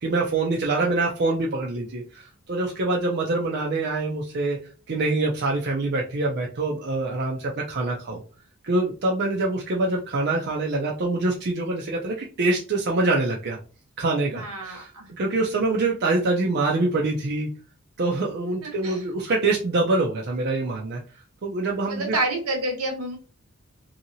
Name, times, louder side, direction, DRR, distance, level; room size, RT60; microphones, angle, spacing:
voice 1, 0.0-4.6 4.9-8.2 8.6-13.6 14.0-17.5 18.0-21.0 21.4-22.1, right 2 dB, 50° right, -1 dB, 0.5 m, -25 dB
voice 2, 14.2-15.1 18.6-19.0 21.9-23.2, right 2 dB, 85° right, 2 dB, 1.1 m, -29 dB
2.8 x 2.7 x 2.6 m, 0.36 s
head